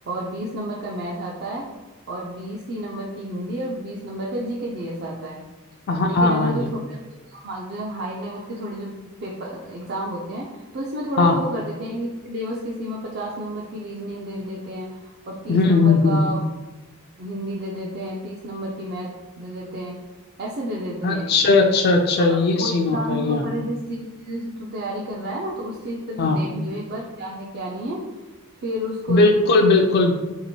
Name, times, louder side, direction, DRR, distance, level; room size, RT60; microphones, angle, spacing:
voice 1, 0.1-1.7 2.1-5.4 6.0-7.0 7.3-8.9 9.2-16.4 17.2-20.0 20.4-21.4 22.2-28.0 28.6-29.5, equal, 50° right, -3 dB, 0.5 m, -31 dB
voice 2, 5.9-6.6 11.2-11.4 15.5-16.2 21.0-23.4 26.2-26.4 29.1-30.1, left 3 dB, 45° left, 3 dB, 0.3 m, -18 dB
3.0 x 2.9 x 4.2 m, 1.1 s
head